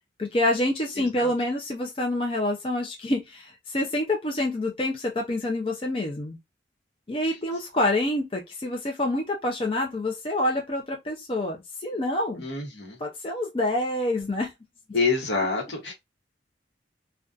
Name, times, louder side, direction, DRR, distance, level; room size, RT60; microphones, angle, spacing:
voice 1, 0.2-6.4 7.1-12.4 13.0-14.5, left 1 dB, 30° left, 0.4 m, -27 dB
voice 2, 0.9-1.5 7.2-7.4 12.4-13.0 14.9-15.9, left 4 dB, 70° left, 1.0 m, -28 dB
2.5 x 2.2 x 2.3 m
head